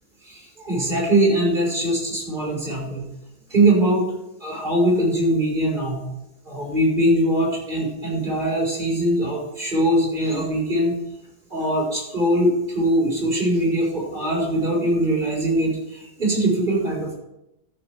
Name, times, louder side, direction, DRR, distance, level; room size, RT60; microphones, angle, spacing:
voice 1, 0.2-3.1 3.5-4.0 4.4-6.0 6.4-10.9 11.5-17.2, right 1 dB, 25° right, -5 dB, 5.1 m, -21 dB
13.5 x 6.5 x 5.0 m, 0.86 s
omnidirectional pair, 2.0 m